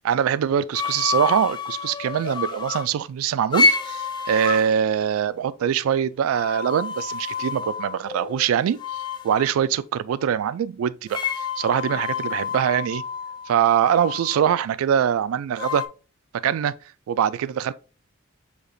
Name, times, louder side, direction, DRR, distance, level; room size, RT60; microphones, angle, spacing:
voice 1, 0.0-8.8 9.2-11.2 11.6-13.0 13.5-15.8 16.4-16.7 17.1-17.7, right 9 dB, 85° right, 0.3 m, -23 dB
sound 1, 0.7-2.9 3.5-4.7 6.3-8.4 8.8-9.5 11.1-14.4 15.6-15.9, left 4 dB, 20° left, 0.4 m, -28 dB
6.5 x 2.9 x 2.6 m
head